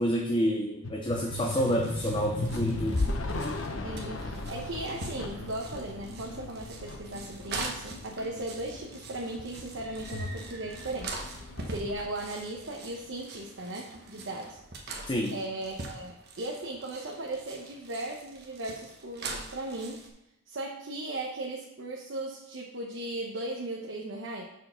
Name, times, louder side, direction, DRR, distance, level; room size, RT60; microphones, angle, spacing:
voice 1, 0.0-3.0 15.1-15.3, equal, 25° left, 2 dB, 0.5 m, -28 dB
sound 1, 0.8-13.4, left 2 dB, 75° left, 0.8 m, -37 dB
sound 2, 1.1-20.1, right 3 dB, 50° right, 1.1 m, -43 dB
voice 2, 3.8-11.4 11.6-14.6 15.3-20.0 20.5-24.4, right 2 dB, 70° right, -1 dB, 0.8 m, -37 dB
6.3 x 4.6 x 5.5 m, 0.82 s
head